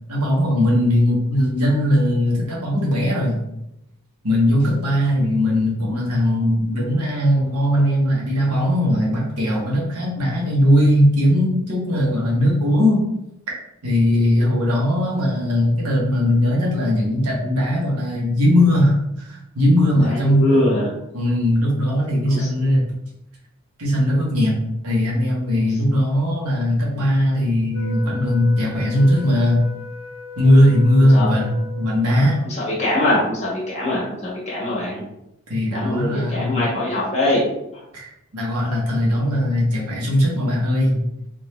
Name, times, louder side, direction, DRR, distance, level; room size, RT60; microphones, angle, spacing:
voice 1, 0.1-3.4 4.2-13.0 13.8-20.4 21.1-22.8 23.8-24.5 24.8-29.6 30.4-32.4 35.5-36.6 37.9-41.1, left 1 dB, 90° right, -3 dB, 1.2 m, -19 dB
voice 2, 14.1-14.7 20.0-20.9 22.3-22.5 25.6-25.8 31.1-31.3 32.5-35.0 35.7-37.4 37.7-37.8, left 1 dB, 30° left, -6 dB, 1.4 m, -23 dB
Wind instrument woodwind instrument, 27.7-32.1, left 4 dB, 85° left, 1.3 m, -37 dB
3.8 x 2.6 x 3.1 m, 0.85 s
head